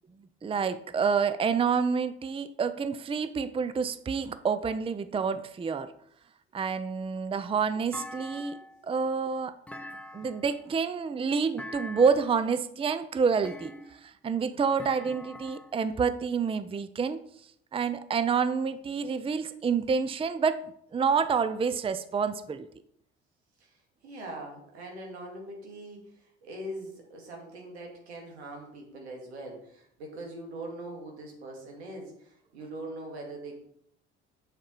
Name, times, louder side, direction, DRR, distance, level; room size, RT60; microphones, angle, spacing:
voice 1, 0.4-5.9 6.5-8.6 8.8-9.5 10.1-17.2 17.7-20.6 20.9-22.7, right 5 dB, 15° right, 12 dB, 0.6 m, -28 dB
Thump thud, 7.9-8.8 9.7-10.6 11.6-12.3 13.4-14.1 14.8-15.8, left 1 dB, 5° left, 1.1 m, -43 dB
voice 2, 24.0-33.6, right 1 dB, 80° right, 0 dB, 2.4 m, -42 dB
7.4 x 6.8 x 4.7 m, 0.70 s
hypercardioid pair, 55°, 32 cm